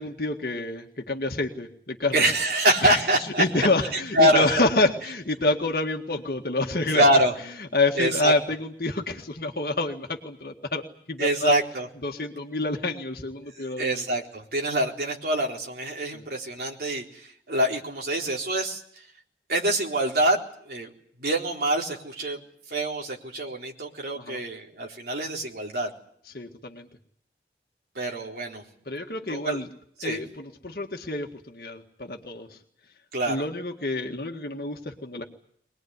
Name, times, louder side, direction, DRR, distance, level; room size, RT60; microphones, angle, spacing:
voice 1, 0.0-2.3 2.8-3.1 3.4-7.0 7.6-10.8 11.1-11.6 12.0-14.0 16.1-16.2 24.2-24.4 26.3-26.9 28.9-29.7 30.0-32.6 33.3-35.2, left 2 dB, 55° left, 3 dB, 1.8 m, -28 dB
voice 2, 2.1-3.4 3.9-4.5 6.9-7.3 8.0-8.3 11.2-11.9 13.6-19.0 19.5-20.4 20.7-20.9 21.2-22.4 22.7-25.9 27.9-28.6 29.3-29.6 30.0-30.2 33.1-33.4, right 1 dB, 60° right, 0 dB, 4.0 m, -25 dB
23.5 x 20.0 x 9.6 m, 0.66 s
head